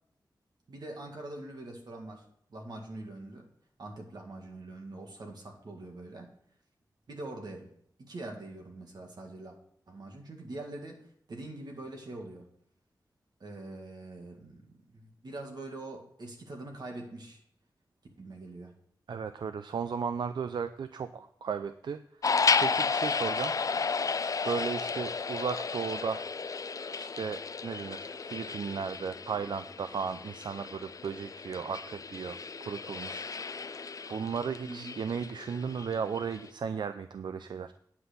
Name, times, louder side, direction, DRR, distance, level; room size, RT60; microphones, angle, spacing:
voice 1, 0.7-3.5 3.8-6.3 7.1-7.7 8.0-9.6 9.9-12.5 13.4-17.4 18.2-18.8 34.6-35.0, right 2 dB, 65° right, 2 dB, 2.1 m, -44 dB
voice 2, 19.1-22.0 22.6-23.5 24.4-26.3 26.9-32.4 32.6-37.7, right 6 dB, 85° right, 10 dB, 0.4 m, -35 dB
sound 1, 22.2-36.5, left 5 dB, 50° left, 0.4 m, -33 dB
9.6 x 5.9 x 6.8 m, 0.67 s
wide cardioid pair, 100°, 8 cm